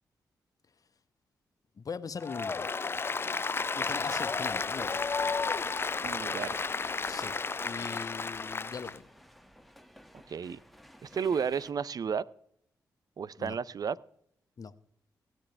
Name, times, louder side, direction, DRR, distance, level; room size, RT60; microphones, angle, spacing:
voice 1, 1.8-2.7 3.7-5.0 7.1-7.4 7.6-9.1 13.4-13.6 14.6-14.7, left 5 dB, 50° left, 13 dB, 0.8 m, -40 dB
Applause, 2.2-9.0, left 4 dB, 30° left, 0.4 m, -32 dB
sound 1, 3.5-11.7, equal, ahead, 1.1 m, -55 dB
voice 2, 6.0-6.7 10.3-10.6 11.0-12.2 13.2-14.0, right 6 dB, 55° right, 19 dB, 0.5 m, -32 dB
16.5 x 10.0 x 3.3 m, 0.68 s
supercardioid pair, 40°, 8 cm